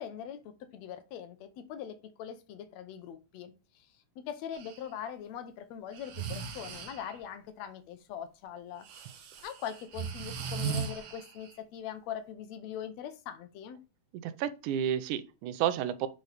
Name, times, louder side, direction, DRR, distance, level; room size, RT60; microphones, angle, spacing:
voice 1, 0.0-3.9 4.2-8.9 9.4-13.8, left 9 dB, 70° left, 1.8 m, -42 dB
Breathing, 4.5-4.8 5.9-7.2 8.8-11.6, right 6 dB, 60° right, 1.8 m, -38 dB
voice 2, 14.2-16.1, right 10 dB, 80° right, 2.0 m, -31 dB
7.7 x 4.0 x 3.4 m
omnidirectional pair, 3.7 m